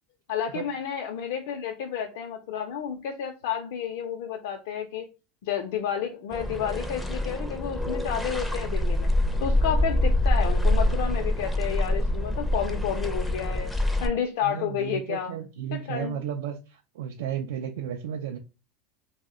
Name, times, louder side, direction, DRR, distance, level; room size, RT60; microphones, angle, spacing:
voice 1, 0.3-5.1 5.4-9.1 9.4-13.7 14.0-15.3 15.7-16.2, left 8 dB, 75° left, 0.4 m, -31 dB
sound 1, 6.3-14.1, left 1 dB, 5° left, 0.4 m, -25 dB
voice 2, 14.4-18.4, right 9 dB, 90° right, 0.3 m, -33 dB
2.8 x 2.0 x 3.6 m
supercardioid pair, 135°, 0 cm